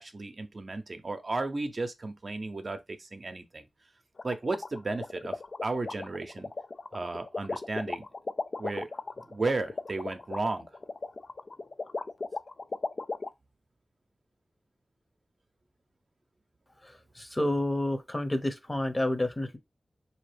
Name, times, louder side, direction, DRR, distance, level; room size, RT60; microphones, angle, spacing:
voice 1, 0.0-3.6 4.2-6.5 6.9-8.1 8.6-8.9 9.3-10.7, right 3 dB, 55° right, 0.6 m, -34 dB
sound 1, 4.2-13.3, left 3 dB, 60° left, 0.3 m, -36 dB
voice 2, 16.8-19.6, left 1 dB, 25° left, 0.9 m, -30 dB
3.6 x 2.8 x 3.3 m
cardioid pair, 45°, 0 cm